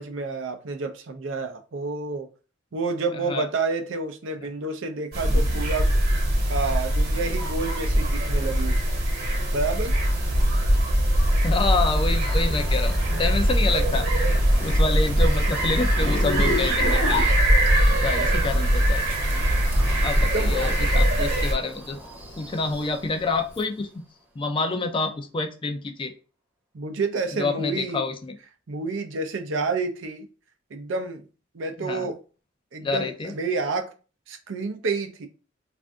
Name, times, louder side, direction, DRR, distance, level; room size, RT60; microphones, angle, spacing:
voice 1, 0.0-2.3 2.7-5.9 6.5-8.8 9.5-10.0 20.3-20.6 26.7-28.0 28.7-30.3 30.7-31.2 31.5-32.2 32.7-33.9 34.3-35.3, right 3 dB, 80° right, 0.5 m, -29 dB
sound 1, 5.1-21.5, equal, 50° right, 1.1 m, -22 dB
Wind, 10.5-23.4, equal, 10° right, 0.7 m, -34 dB
voice 2, 11.4-14.1 14.6-17.3 17.8-19.2 20.0-22.0 22.4-23.9 24.4-26.1 27.4-28.3 31.8-32.1 32.8-33.3, left 3 dB, 25° left, 0.4 m, -28 dB
Zipper (clothing), 15.9-18.0 19.1-20.8 21.2-23.6, left 3 dB, 65° left, 0.7 m, -31 dB
2.5 x 2.5 x 3.4 m
head